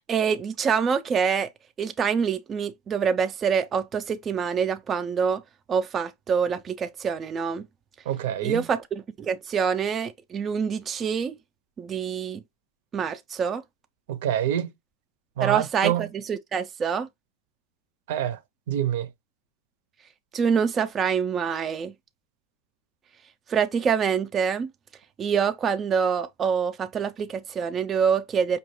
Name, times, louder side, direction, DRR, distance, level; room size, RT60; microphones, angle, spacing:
voice 1, 0.1-1.5 1.8-5.4 5.7-7.6 8.4-11.4 11.8-12.4 12.9-13.6 15.4-17.1 20.3-21.9 23.5-24.7 25.2-28.6, right 6 dB, 25° right, 0.4 m, -26 dB
voice 2, 8.1-8.6 14.1-14.7 15.4-16.1 18.1-18.4 18.7-19.1, right 11 dB, 70° right, 0.6 m, -26 dB
5.4 x 2.3 x 3.1 m
supercardioid pair, 140°, 0 cm